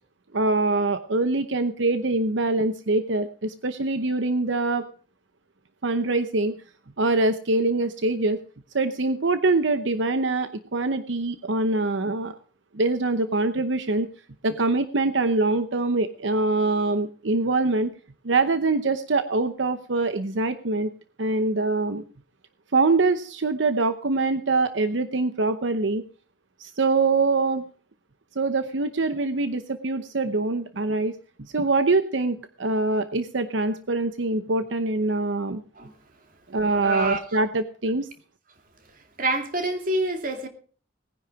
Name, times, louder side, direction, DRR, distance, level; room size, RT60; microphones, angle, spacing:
voice 1, 0.3-4.8 5.8-6.5 7.0-8.4 8.7-12.3 12.7-14.1 14.4-17.9 18.2-20.9 21.2-22.0 22.7-26.0 26.6-27.6 28.4-35.6 36.5-38.1, right 3 dB, 75° right, 0.8 m, -24 dB
voice 2, 36.8-37.2 39.2-40.5, right 1 dB, 45° right, 2.5 m, -26 dB
19.0 x 10.0 x 4.8 m
head